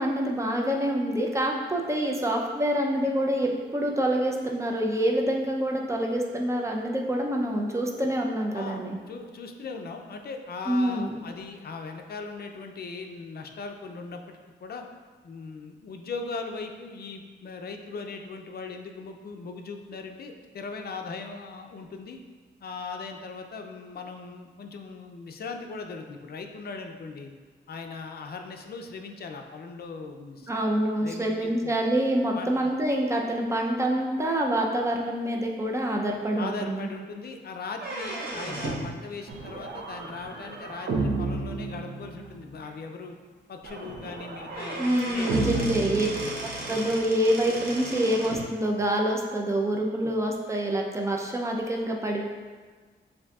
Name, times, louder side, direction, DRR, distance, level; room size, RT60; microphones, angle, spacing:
voice 1, 0.0-9.0 10.7-11.2 30.5-36.9 44.8-46.1 46.7-52.2, right 1 dB, 15° right, 0 dB, 0.5 m, -26 dB
voice 2, 9.1-14.8 15.2-22.2 22.6-27.3 27.7-30.5 31.0-31.7 32.3-32.7 36.4-43.2 43.5-46.3 50.0-50.1, left 4 dB, 55° left, 4 dB, 0.4 m, -39 dB
sound 1, 37.7-38.9 40.7-40.8 41.7-41.8 42.2-42.3 42.6-42.7 44.1-44.2 44.5-48.5, right 2 dB, 55° right, 0.9 m, -35 dB
sound 2, 39.3-42.5 43.6-46.9, right 3 dB, 85° right, 0.6 m, -33 dB
7.0 x 2.6 x 2.3 m, 1.5 s
wide cardioid pair, 110°, 19 cm